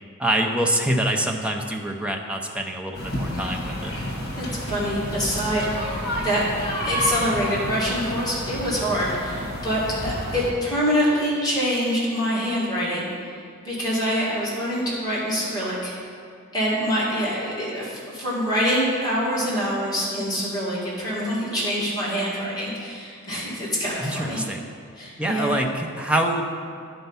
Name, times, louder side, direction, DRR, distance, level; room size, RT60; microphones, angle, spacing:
voice 1, 0.2-3.9 24.0-24.6 25.2-26.4, right 1 dB, 5° right, 2 dB, 0.6 m, -25 dB
sound 1, 2.9-10.5, equal, 50° left, 1.4 m, -30 dB
voice 2, 4.4-6.4 6.8-13.1 13.6-15.9 16.5-24.4 25.0-25.6, equal, 20° left, -8 dB, 2.1 m, -25 dB
11.0 x 4.6 x 5.5 m, 2.2 s
head